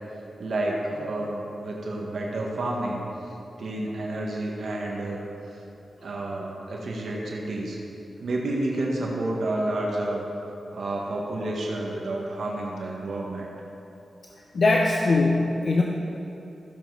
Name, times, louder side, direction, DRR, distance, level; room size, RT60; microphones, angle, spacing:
voice 1, 0.4-3.0 3.6-5.2 6.0-7.8 8.2-10.2 10.7-13.5, right 2 dB, 75° right, -2 dB, 1.5 m, -30 dB
voice 2, 14.5-15.8, left 3 dB, 55° left, -1 dB, 0.8 m, -21 dB
14.5 x 7.4 x 4.8 m, 3.0 s
wide cardioid pair, 120°, 0 cm